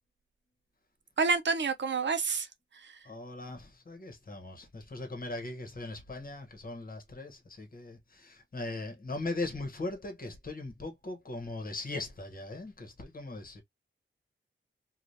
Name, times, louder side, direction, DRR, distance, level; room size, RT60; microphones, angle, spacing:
voice 1, 1.2-2.5, right 4 dB, 60° right, 0.5 m, -28 dB
voice 2, 3.0-13.6, left 2 dB, 45° left, 1.1 m, -39 dB
2.7 x 2.4 x 3.2 m
wide cardioid pair, 115°, 21 cm